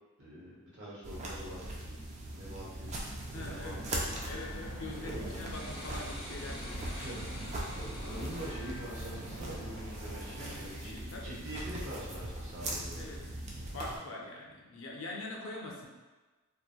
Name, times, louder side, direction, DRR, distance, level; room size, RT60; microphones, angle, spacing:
voice 1, 0.2-1.8 2.3-2.9 3.4-3.7 5.0-5.3 7.0-7.3 7.7-13.1, right 1 dB, 55° right, -8 dB, 0.9 m, -44 dB
sound 1, 1.0-14.0, right 1 dB, 30° right, 0.3 m, -40 dB
voice 2, 3.3-3.8 4.2-7.1 10.3-11.4 13.0-13.2 13.7-15.9, left 2 dB, 65° left, -1 dB, 0.5 m, -44 dB
sound 2, 3.7-10.7, left 1 dB, 25° left, 0.6 m, -46 dB
2.8 x 2.1 x 2.3 m, 1.2 s
head